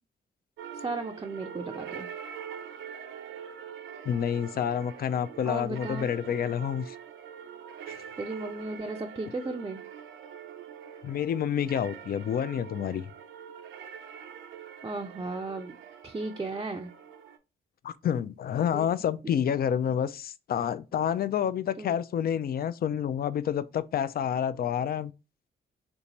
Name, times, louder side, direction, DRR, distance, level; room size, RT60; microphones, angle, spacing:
sound 1, 0.6-17.4, right 8 dB, 75° right, 0.5 m, -44 dB
voice 1, 0.7-2.1 5.4-6.1 8.2-9.8 14.8-15.8 16.0-16.9 18.7-18.9 21.8-22.0, right 3 dB, 20° right, 0.5 m, -35 dB
voice 2, 4.1-7.0 7.9-8.0 11.0-13.0 17.8-25.1, left 9 dB, 50° left, 0.4 m, -29 dB
3.4 x 2.6 x 2.9 m
supercardioid pair, 50°, 20 cm